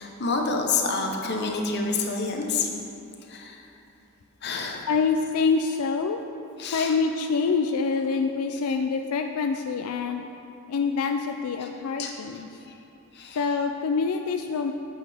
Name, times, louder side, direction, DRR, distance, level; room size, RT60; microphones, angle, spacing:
voice 1, 0.0-2.7 3.3-3.6 4.4-4.9 6.6-6.9 12.0-12.1 12.7-12.8 13.1-13.4, left 4 dB, 50° left, 2 dB, 0.8 m, -28 dB
voice 2, 4.9-6.2 6.7-10.3 10.7-12.5 13.3-14.7, left 5 dB, 80° left, 5 dB, 0.4 m, -26 dB
10.5 x 7.2 x 3.5 m, 2.8 s
head